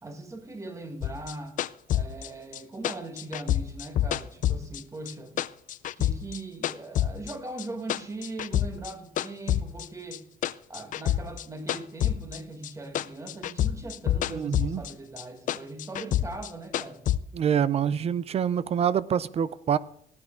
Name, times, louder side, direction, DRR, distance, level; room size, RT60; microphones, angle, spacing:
voice 1, 0.0-1.6 1.9-5.4 6.0-10.2 10.7-17.1, right 2 dB, 20° right, 1.5 m, -40 dB
sound 1, 1.0-5.1 5.4-7.3 7.6-8.9 9.2-12.7 13.0-14.9 15.2-17.2, left 12 dB, 50° left, 0.4 m, -28 dB
voice 2, 14.3-14.8 17.3-19.8, right 8 dB, 35° right, 0.4 m, -26 dB
15.5 x 8.8 x 3.7 m
cardioid pair, 110°, 17 cm